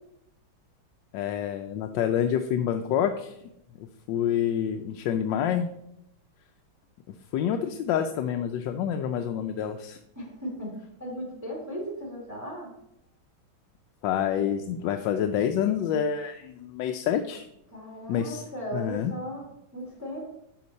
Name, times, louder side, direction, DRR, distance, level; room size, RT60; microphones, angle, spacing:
voice 1, 1.1-3.4 4.1-5.7 7.3-10.0 14.0-17.5 18.1-18.4 18.7-19.1, left 9 dB, 75° left, 6 dB, 1.2 m, -27 dB
voice 2, 10.2-12.7 17.7-20.3, equal, 10° right, -4 dB, 2.4 m, -37 dB
10.5 x 5.1 x 4.1 m, 0.81 s
omnidirectional pair, 2.1 m